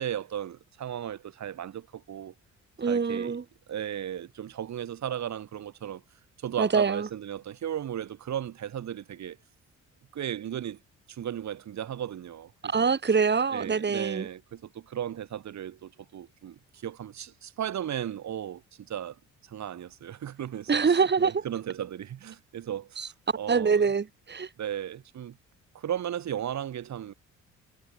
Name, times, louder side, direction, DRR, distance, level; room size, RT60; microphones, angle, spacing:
voice 1, 0.0-2.3 2.8-3.4 3.7-6.0 6.4-9.4 10.1-10.8 11.1-12.5 12.8-12.9 13.5-18.6 18.9-19.2 19.5-23.9 24.6-25.4 25.7-27.1, right 10 dB, 65° right, 6.5 m, -35 dB
voice 2, 2.8-3.4 6.6-7.1 12.7-14.3 20.7-21.4 23.0-23.1 23.5-24.5, right 5 dB, 35° right, 4.9 m, -25 dB
cardioid pair, 90°, 30 cm